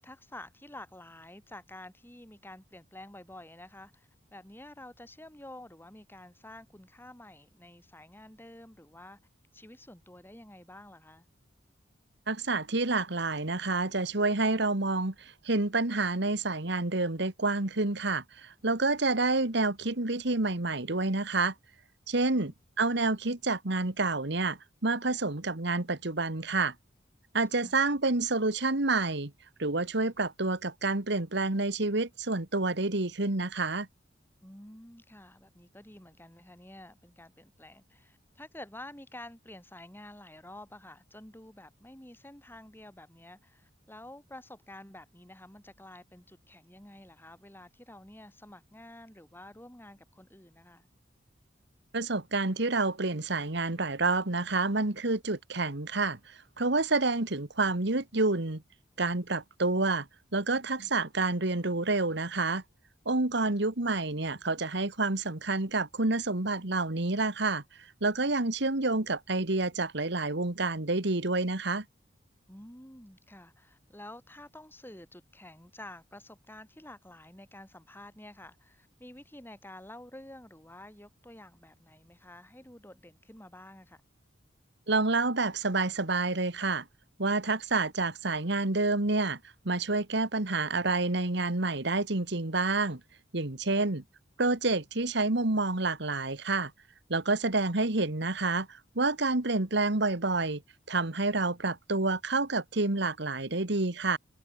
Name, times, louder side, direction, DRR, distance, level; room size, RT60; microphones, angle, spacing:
voice 1, 0.0-9.2 9.5-11.3 22.3-22.5 27.6-27.8 34.4-50.9 63.4-63.6 72.5-84.0 93.7-94.0, left 1 dB, 10° left, 7.4 m, -50 dB
voice 2, 12.3-21.5 22.1-22.5 22.8-26.7 27.3-29.3 29.6-33.9 51.9-58.6 59.0-60.1 60.3-62.6 63.1-67.6 68.0-71.9 84.9-86.9 87.2-89.4 89.7-93.0 93.3-94.0 94.4-96.7 97.1-100.6 100.9-104.2, right 3 dB, 65° right, 1.9 m, -28 dB
head